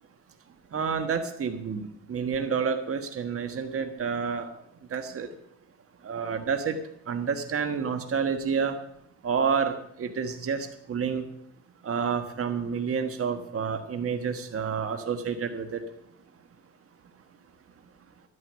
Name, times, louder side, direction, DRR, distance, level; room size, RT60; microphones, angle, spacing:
voice 1, 0.7-4.5 4.9-5.3 6.0-6.8 7.1-8.8 9.2-11.2 11.8-15.8, right 6 dB, 50° right, 7 dB, 1.4 m, -29 dB
13.0 x 9.7 x 7.0 m, 0.75 s
cardioid pair, 90°, 30 cm